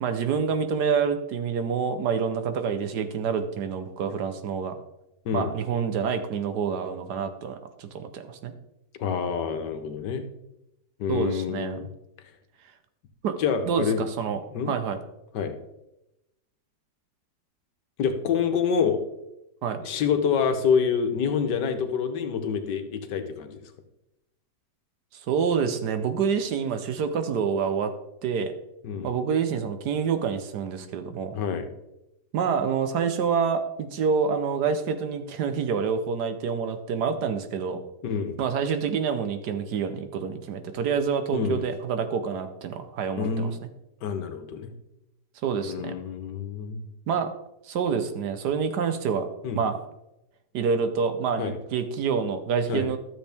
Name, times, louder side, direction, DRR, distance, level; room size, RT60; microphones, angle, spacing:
voice 1, 0.0-4.8 5.3-8.5 11.1-11.8 13.2-13.4 13.7-14.4 14.7-15.0 19.6-19.8 25.1-27.9 28.2-28.5 29.0-31.3 32.3-37.8 38.4-43.5 45.4-45.9 47.1-47.3 47.6-49.3 49.5-49.8 50.5-53.0, right 6 dB, 70° right, 9 dB, 1.4 m, -27 dB
voice 2, 9.0-10.3 11.0-11.9 13.4-14.0 14.5-14.7 15.3-15.5 18.0-19.0 19.8-23.6 28.8-29.2 31.3-31.7 38.0-38.4 41.3-41.7 43.1-43.5 44.0-44.7 45.6-46.9 49.4-49.6 51.4-51.5 52.7-52.9, left 6 dB, 80° left, 8 dB, 1.6 m, -27 dB
12.5 x 7.3 x 3.5 m, 0.90 s
omnidirectional pair, 1.9 m